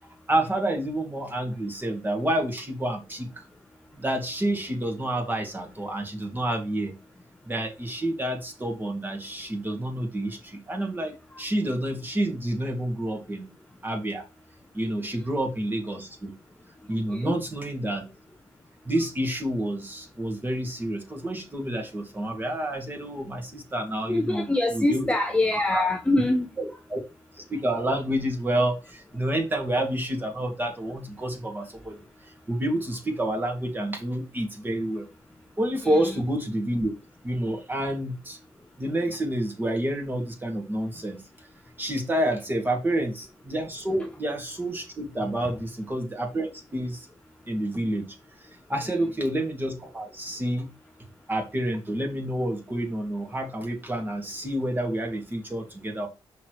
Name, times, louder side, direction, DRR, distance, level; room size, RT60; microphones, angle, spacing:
voice 1, 0.3-3.4 3.9-6.9 7.5-13.5 13.8-14.3 14.7-16.3 16.9-18.0 18.9-24.5 24.7-25.1 25.7-25.9 26.6-27.0 27.3-32.0 32.5-35.1 35.6-36.9 37.2-38.4 38.8-41.2 41.8-47.1 47.5-48.1 48.7-50.7 51.3-56.1, right 1 dB, 20° right, 2.0 m, -29 dB
voice 2, 24.1-26.5 35.8-36.2 45.4-45.5 48.8-49.1, left 2 dB, 10° left, 0.7 m, -25 dB
6.4 x 5.8 x 3.0 m
cardioid pair, 130°, 10 cm